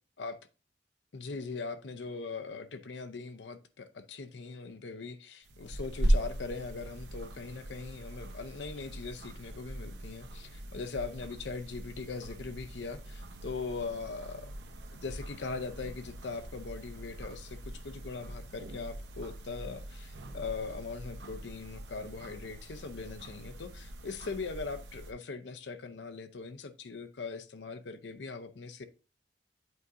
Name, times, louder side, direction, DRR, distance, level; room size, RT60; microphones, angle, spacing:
voice 1, 1.1-14.5 14.9-28.9, left 4 dB, 85° left, 0.6 m, -40 dB
sound 1, 5.4-25.1, right 1 dB, 80° right, 0.9 m, -39 dB
8.2 x 4.7 x 2.5 m
head